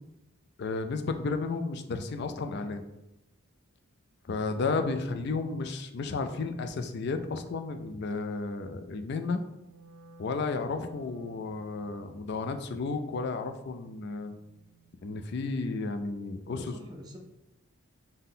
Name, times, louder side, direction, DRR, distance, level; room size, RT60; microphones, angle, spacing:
voice 1, 0.6-2.8 4.3-9.4 10.2-14.3 15.0-16.7, left 3 dB, 55° left, 7 dB, 0.4 m, -33 dB
Wind instrument woodwind instrument, 9.5-15.7, right 4 dB, 80° right, 0.4 m, -58 dB
voice 2, 16.5-17.2, equal, 20° right, -1 dB, 0.6 m, -46 dB
5.7 x 2.2 x 3.7 m, 0.92 s
head